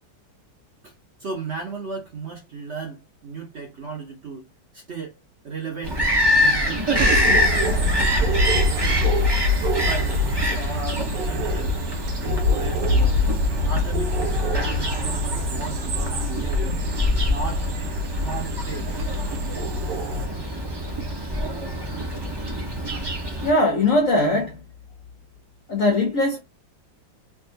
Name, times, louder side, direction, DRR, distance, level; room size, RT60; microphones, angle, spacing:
voice 1, 1.2-4.5 4.7-5.2 5.4-6.0 6.3-7.7 8.0-9.1 9.8-10.2 10.5-11.8 12.2-13.2 13.6-16.8 17.2-17.7 18.2-18.9 19.8-20.0, right 4 dB, 50° right, 0.8 m, -35 dB
Bird vocalization bird call bird song, 5.8-23.5, equal, 35° right, 0.3 m, -26 dB
sound 1, 6.9-20.3, left 2 dB, 70° right, 1.4 m, -25 dB
voice 2, 23.4-24.6 25.7-26.4, left 2 dB, 70° left, 0.8 m, -20 dB
3.5 x 2.5 x 2.7 m
omnidirectional pair, 2.1 m